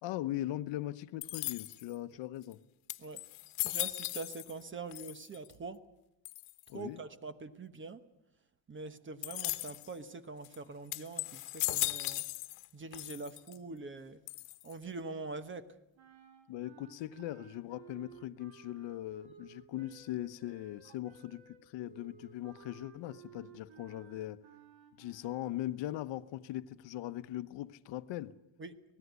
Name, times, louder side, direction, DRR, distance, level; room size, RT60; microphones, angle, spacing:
voice 1, 0.0-2.6 6.7-7.0 16.5-24.4 25.0-28.4, left 14 dB, 65° left, 0.9 m, -40 dB
sound 1, 1.2-1.9 2.5-2.6 2.9-4.6 4.9-5.5 6.2-6.7 9.2-9.9 10.4-10.6 10.9-12.7 12.9-13.6 14.3-14.8, left 20 dB, 85° left, 1.1 m, -37 dB
voice 2, 3.6-5.8 6.7-8.0 8.7-12.3 12.7-14.2 14.6-15.7 28.6-28.8, right 3 dB, 25° right, 1.1 m, -44 dB
sound 2, 16.0-25.6, right 9 dB, 75° right, 4.0 m, -57 dB
25.5 x 19.0 x 8.1 m
cardioid pair, 145°, 48 cm